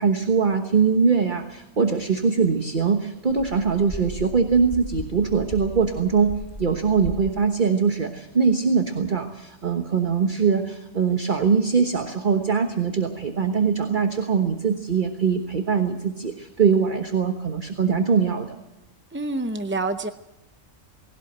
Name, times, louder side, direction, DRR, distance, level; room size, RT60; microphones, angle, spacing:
voice 1, 0.0-6.3 6.6-18.6, right 5 dB, 40° right, 6 dB, 1.4 m, -22 dB
sound 1, 3.3-7.3, left 2 dB, 30° left, 3.1 m, -37 dB
voice 2, 19.1-20.1, right 2 dB, 15° right, 9 dB, 0.4 m, -27 dB
19.5 x 17.0 x 8.0 m, 0.93 s
omnidirectional pair, 1.4 m